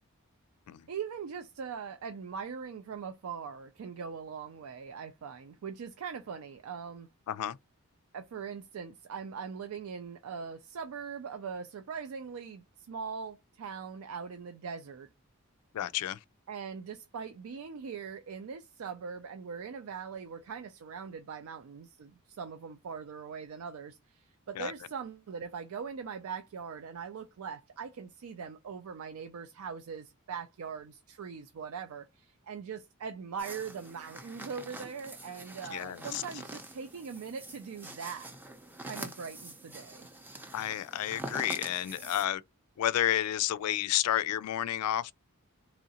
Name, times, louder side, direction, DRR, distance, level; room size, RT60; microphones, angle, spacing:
voice 1, 0.9-7.1 8.1-15.1 16.5-38.3 38.8-40.1, right 6 dB, 70° right, 0.4 m, -41 dB
voice 2, 7.3-7.6 15.7-16.2 24.6-24.7 35.7-36.2 40.5-42.4 42.8-45.1, left 12 dB, 90° left, 0.3 m, -31 dB
sound 1, 33.4-42.3, right 1 dB, 10° right, 0.5 m, -45 dB
3.7 x 3.0 x 2.8 m
head